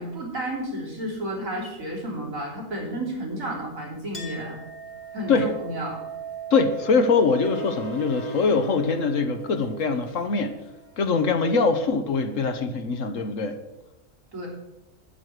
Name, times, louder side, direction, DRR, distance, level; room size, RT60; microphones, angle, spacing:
voice 1, 0.0-4.6 5.1-5.3 5.6-6.0 14.3-14.5, right 1 dB, 70° right, -3 dB, 4.0 m, -32 dB
Chink clink, 4.1-11.2, right 7 dB, 30° left, 1.9 m, -41 dB
sound 1, 5.0-11.2, left 1 dB, 90° left, 2.8 m, -40 dB
voice 2, 6.5-10.5 11.0-13.6, left 4 dB, 65° left, 8 dB, 1.3 m, -23 dB
12.0 x 9.5 x 4.8 m, 1.0 s
omnidirectional pair, 1.5 m